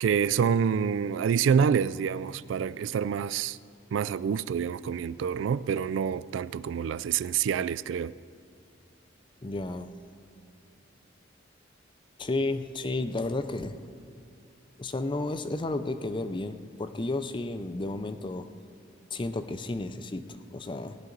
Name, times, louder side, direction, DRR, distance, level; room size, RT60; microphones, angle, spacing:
voice 1, 0.0-3.6 3.9-8.1, right 7 dB, 75° right, 0.3 m, -27 dB
voice 2, 9.4-9.9 12.2-13.8 14.8-18.5 19.1-20.2 20.5-21.0, left 2 dB, 25° left, 0.5 m, -32 dB
18.0 x 11.0 x 3.9 m
head